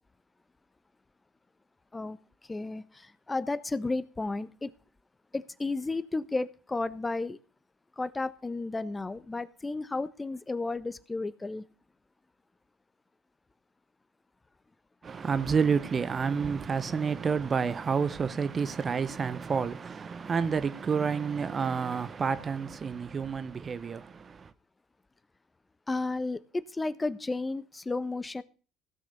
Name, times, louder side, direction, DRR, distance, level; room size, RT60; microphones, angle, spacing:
voice 1, 1.9-4.7 5.3-7.4 8.0-11.7 25.9-28.4, left 3 dB, 20° left, 1.1 m, -33 dB
voice 2, 15.0-24.5, right 6 dB, 35° right, 0.9 m, -29 dB
16.5 x 6.5 x 6.6 m
hypercardioid pair, 65°, 0 cm